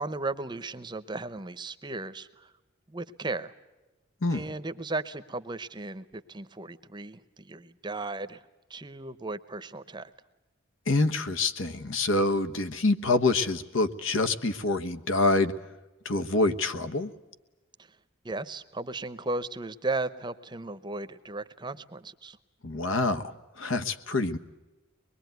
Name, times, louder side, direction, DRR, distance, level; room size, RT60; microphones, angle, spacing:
voice 1, 0.0-2.5 2.9-3.5 4.3-8.4 8.7-10.1 17.8-17.9 18.2-22.4, right 2 dB, 20° right, 13 dB, 0.8 m, -35 dB
voice 2, 10.9-15.5 16.0-17.1 22.6-24.4, left 2 dB, 75° left, 10 dB, 1.3 m, -26 dB
24.0 x 22.0 x 9.3 m, 1.1 s
head